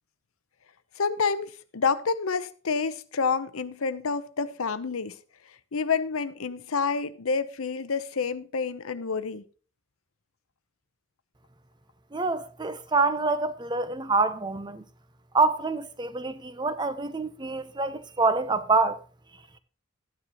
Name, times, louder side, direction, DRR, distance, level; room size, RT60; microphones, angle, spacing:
voice 1, 1.0-5.2 5.7-9.4, left 5 dB, 90° left, 0.7 m, -28 dB
voice 2, 12.1-14.8 15.3-19.0, right 3 dB, 20° right, 0.6 m, -26 dB
12.5 x 9.6 x 2.9 m
head